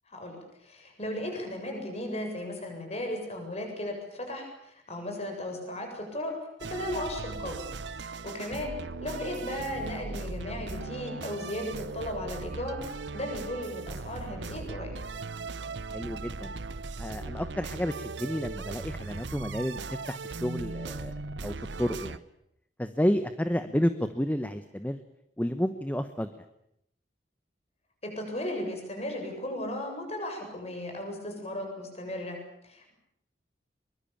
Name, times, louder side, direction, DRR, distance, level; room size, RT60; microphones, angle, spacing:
voice 1, 0.1-6.3 6.6-7.6 8.2-14.9 28.0-32.4 32.6-32.9, left 1 dB, 35° left, 3 dB, 7.7 m, -36 dB
sound 1, 6.6-22.2, right 3 dB, 85° right, 0.9 m, -38 dB
voice 2, 15.9-16.5 17.0-21.1 21.4-22.2 22.8-25.0 25.4-26.3, equal, 10° left, 10 dB, 1.0 m, -30 dB
23.0 x 22.5 x 8.7 m, 0.77 s
head